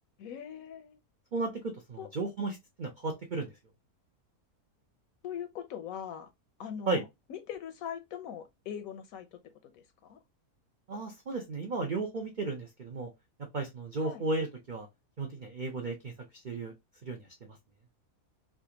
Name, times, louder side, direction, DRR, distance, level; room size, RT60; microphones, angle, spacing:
voice 1, 0.2-1.0 2.0-2.1 5.2-6.3 6.6-9.4 9.7-10.2 14.0-14.2, left 8 dB, 70° left, 1.0 m, -41 dB
voice 2, 1.3-3.5 6.9-7.0 10.9-13.1 13.5-14.9 15.2-16.7 17.0-17.6, right 3 dB, 65° right, 0.4 m, -34 dB
3.3 x 2.4 x 2.8 m
omnidirectional pair, 1.6 m